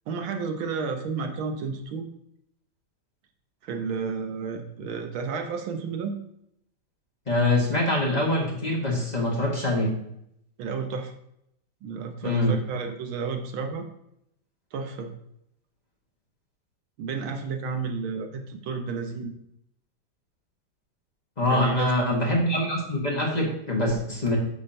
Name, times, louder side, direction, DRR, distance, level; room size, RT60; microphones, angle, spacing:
voice 1, 0.1-2.1 3.6-6.2 10.6-11.1 11.8-13.9 14.7-15.1 17.0-19.3 21.4-21.9, right 5 dB, 80° right, 5 dB, 1.7 m, -31 dB
voice 2, 7.3-9.9 12.2-12.6 21.4-24.4, left 1 dB, 25° left, -2 dB, 1.2 m, -24 dB
8.6 x 6.0 x 2.7 m, 0.75 s
omnidirectional pair, 2.2 m